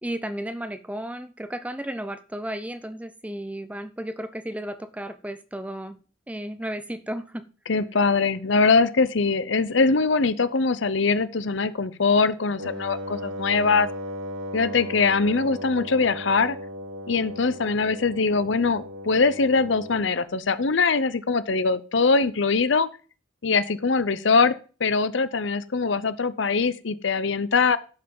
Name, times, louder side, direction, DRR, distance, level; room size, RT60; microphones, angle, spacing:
voice 1, 0.0-6.0 6.3-7.4, right 1 dB, 5° right, 11 dB, 0.7 m, -33 dB
voice 2, 7.7-13.9 14.5-16.6 17.1-22.9 23.4-24.5 24.8-27.8, left 4 dB, 65° left, 15 dB, 0.7 m, -22 dB
Wind instrument woodwind instrument, 12.6-20.2, equal, 85° right, 1.2 m, -36 dB
12.0 x 5.5 x 5.4 m, 0.36 s
head